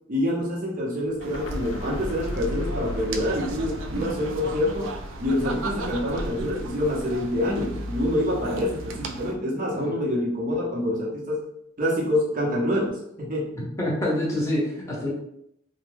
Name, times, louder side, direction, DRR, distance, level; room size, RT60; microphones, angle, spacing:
voice 1, 0.1-4.9 5.2-11.4 11.8-13.6, left 1 dB, 45° right, -4 dB, 0.8 m, -26 dB
sound 1, 1.0-6.8, left 1 dB, 85° left, 0.4 m, -37 dB
sound 2, 1.2-9.4, right 3 dB, 75° right, 0.3 m, -35 dB
voice 2, 13.6-15.1, left 1 dB, 15° left, -5 dB, 0.7 m, -27 dB
2.2 x 2.1 x 3.2 m, 0.75 s
head